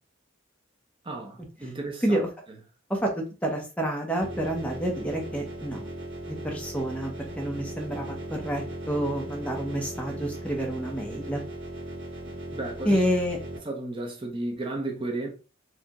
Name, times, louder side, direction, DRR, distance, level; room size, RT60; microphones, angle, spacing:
voice 1, 1.0-2.2 12.3-13.0 13.6-15.3, right 2 dB, 25° right, 0.8 m, -34 dB
voice 2, 3.4-5.9 6.3-11.4 12.8-13.4, right 1 dB, 5° left, 0.9 m, -28 dB
sound 1, 4.2-13.6, right 1 dB, 75° right, 2.0 m, -38 dB
4.5 x 2.5 x 3.0 m
head